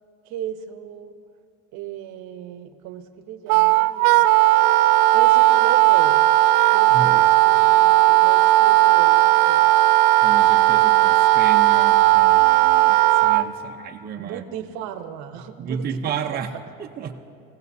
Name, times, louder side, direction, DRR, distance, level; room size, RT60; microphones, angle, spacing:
voice 1, 0.3-1.1 1.7-4.5 5.1-6.3 6.7-9.6 14.2-16.4, right 10 dB, 60° right, 8 dB, 1.0 m, -36 dB
Wind instrument woodwind instrument, 3.5-13.5, right 18 dB, 85° right, 0.6 m, -16 dB
voice 2, 6.9-7.2 10.2-14.4 15.6-17.1, right 6 dB, 30° right, 2 dB, 0.8 m, -32 dB
22.5 x 16.0 x 2.7 m, 2.4 s
cardioid pair, 135°, 32 cm